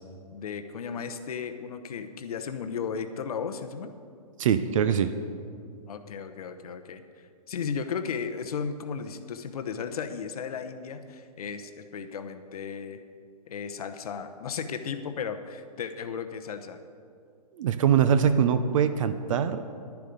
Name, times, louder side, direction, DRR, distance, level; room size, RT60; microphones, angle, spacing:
voice 1, 0.3-3.9 5.9-7.0 7.5-13.0 13.5-16.8, left 6 dB, 65° left, 8 dB, 0.9 m, -35 dB
voice 2, 4.4-5.1 17.5-19.6, right 8 dB, 55° right, 11 dB, 0.7 m, -23 dB
11.5 x 10.5 x 5.2 m, 2.3 s
hypercardioid pair, 125°, 20 cm